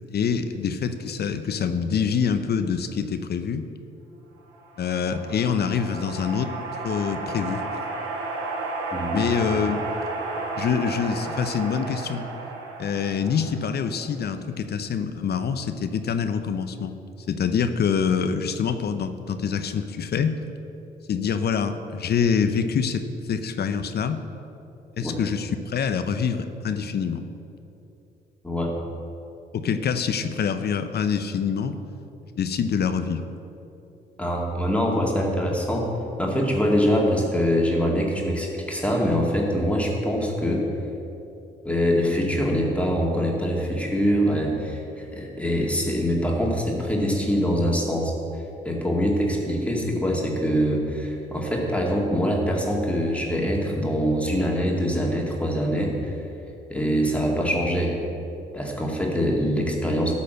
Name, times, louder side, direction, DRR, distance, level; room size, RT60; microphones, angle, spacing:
voice 1, 0.1-3.6 4.8-6.5 6.8-7.7 9.1-9.8 10.6-12.3 12.8-16.9 17.3-20.4 21.1-24.2 25.0-27.2 29.5-31.8 32.4-33.2, left 6 dB, 50° left, 10 dB, 0.7 m, -25 dB
sound 1, 4.5-14.1, right 3 dB, 80° right, 1.4 m, -33 dB
voice 2, 8.9-9.3 25.0-25.1 28.4-28.7 34.2-35.9 36.2-40.7 41.6-48.1 48.6-56.2 56.7-58.0 58.5-60.2, equal, 5° left, -2 dB, 2.3 m, -24 dB
12.5 x 4.3 x 7.8 m, 2.9 s
hypercardioid pair, 50°, 20 cm